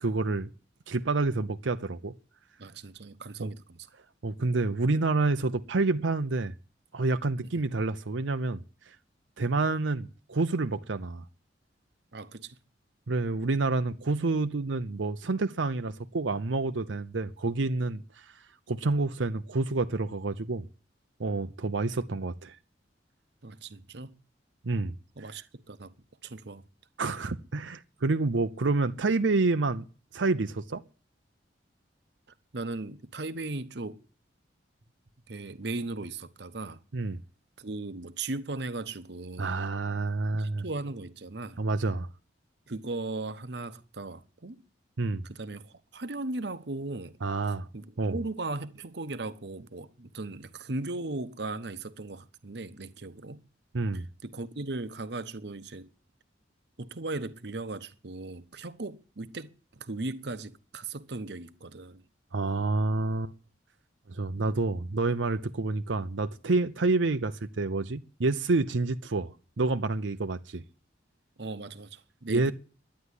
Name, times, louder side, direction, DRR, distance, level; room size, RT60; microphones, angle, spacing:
voice 1, 0.0-0.5 0.9-2.1 3.4-3.5 4.2-6.5 6.9-8.6 8.9-9.0 9.4-11.2 13.1-18.3 18.7-20.6 21.2-22.6 24.6-25.0 27.0-29.9 30.1-30.8 36.9-37.2 39.4-40.6 41.6-42.1 45.0-45.2 47.2-47.7 48.0-48.2 53.7-54.1 62.3-63.3 64.1-70.6 72.3-72.5, right 3 dB, 85° right, 0.7 m, -28 dB
voice 2, 2.6-3.9 7.5-7.6 12.1-12.6 23.4-24.1 25.2-25.9 26.2-26.6 32.5-34.0 35.3-36.8 37.6-39.5 40.3-41.6 42.7-44.6 45.2-47.2 47.7-53.4 53.9-55.9 56.8-62.0 71.4-72.5, right 2 dB, 65° right, 1.0 m, -37 dB
11.5 x 9.7 x 9.8 m
head